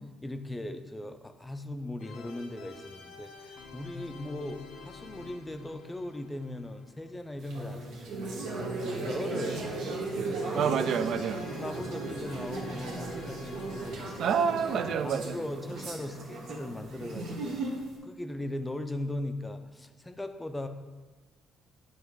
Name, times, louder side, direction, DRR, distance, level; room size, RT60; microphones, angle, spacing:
voice 1, 0.2-9.7 10.2-10.7 11.5-14.3 15.0-20.7, left 1 dB, 10° left, 8 dB, 0.4 m, -39 dB
sound 1, 2.0-7.9 10.4-16.2, left 4 dB, 85° left, 0.6 m, -49 dB
sound 2, 7.4-17.9, right 3 dB, 90° right, 1.2 m, -36 dB
voice 2, 10.5-11.4 14.2-15.4, right 7 dB, 65° right, 10 dB, 0.3 m, -28 dB
8.8 x 3.0 x 4.6 m, 1.3 s
cardioid pair, 125°, 0 cm